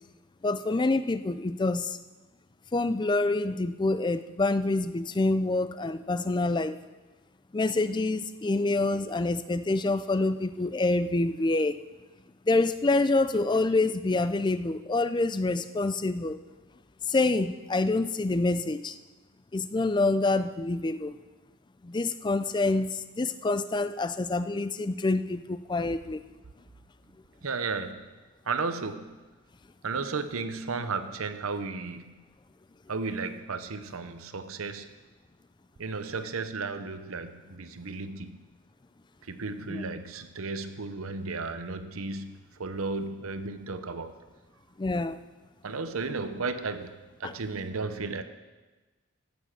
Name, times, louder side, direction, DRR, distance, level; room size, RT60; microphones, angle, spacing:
voice 1, 0.4-2.0 2.7-6.8 7.5-11.8 12.5-16.4 17.1-19.0 19.5-21.1 21.8-26.2 39.7-39.9 44.8-45.2 47.2-47.3, left 2 dB, 20° left, 13 dB, 0.4 m, -27 dB
voice 2, 27.4-28.0 28.5-29.2 29.8-32.1 32.9-34.9 35.8-38.5 39.3-44.1 45.6-48.2, right 4 dB, 80° right, 10 dB, 0.8 m, -34 dB
15.5 x 7.1 x 6.0 m, 1.2 s
head